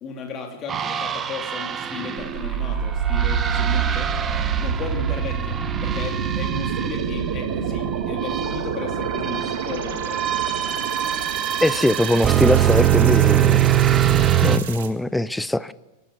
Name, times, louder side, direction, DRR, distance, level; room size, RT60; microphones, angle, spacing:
voice 1, 0.0-4.1 4.6-10.2, left 5 dB, 30° left, 3 dB, 3.2 m, -35 dB
sound 1, 0.7-14.6, right 11 dB, 20° right, 1.1 m, -23 dB
sound 2, 2.2-14.9, right 8 dB, 55° right, 1.9 m, -28 dB
voice 2, 11.6-14.2 14.4-15.7, left 1 dB, 5° left, 19 dB, 0.6 m, -22 dB
26.0 x 12.0 x 8.3 m, 1.1 s
figure-of-eight pair, 90°, 0 cm